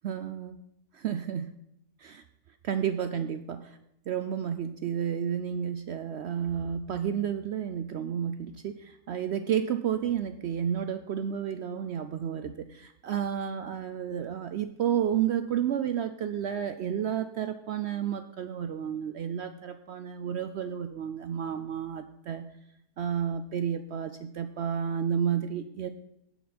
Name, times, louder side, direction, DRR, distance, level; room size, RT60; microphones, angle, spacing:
voice 1, 0.0-0.6 0.9-1.5 2.0-2.2 2.6-3.8 4.1-22.5 23.0-25.9, right 8 dB, 70° right, 9 dB, 0.6 m, -31 dB
16.0 x 5.9 x 4.3 m, 0.81 s
omnidirectional pair, 1.5 m